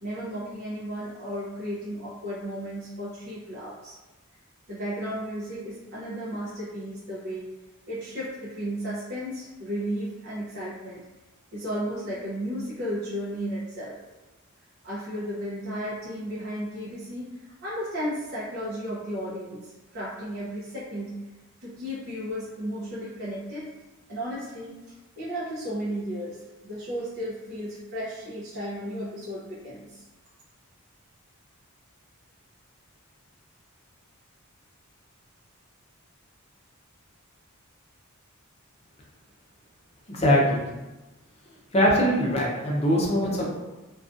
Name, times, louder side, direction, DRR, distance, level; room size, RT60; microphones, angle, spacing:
voice 1, 0.0-3.9 4.7-7.5 7.9-11.0 11.5-14.0 14.8-21.2 21.6-23.7 24.1-24.8 25.2-30.0, equal, 50° right, -10 dB, 0.6 m, -34 dB
voice 2, 40.1-40.6 41.7-43.5, equal, 30° left, -3 dB, 0.5 m, -22 dB
2.5 x 2.3 x 2.4 m, 1.1 s
head